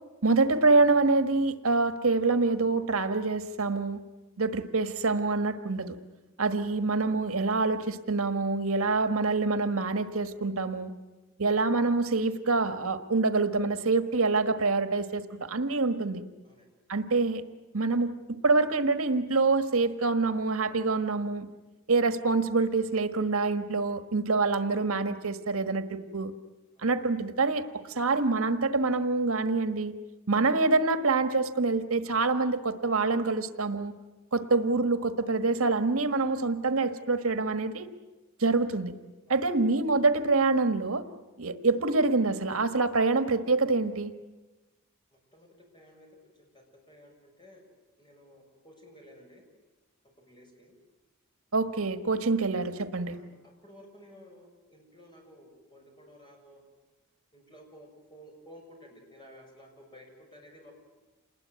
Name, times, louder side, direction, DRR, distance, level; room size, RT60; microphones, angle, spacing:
voice 1, 0.2-4.0 4.4-6.0 6.4-10.9 11.4-16.2 16.9-17.4 17.7-21.4 21.9-26.3 26.8-27.6 27.9-30.0 30.3-33.9 34.3-37.9 38.4-38.9 39.3-41.0 41.4-44.1 51.5-53.2, right 3 dB, 80° right, 9 dB, 1.5 m, -26 dB
voice 2, 6.7-7.0 16.4-16.7 26.7-26.9 34.3-34.6 38.5-38.8 39.3-39.5 45.1-45.5 45.7-46.1 46.3-47.6 48.0-49.4 50.2-50.7 53.1-56.6 57.3-60.8, equal, 20° left, 1 dB, 7.2 m, -54 dB
28.0 x 20.5 x 9.5 m, 1.1 s
head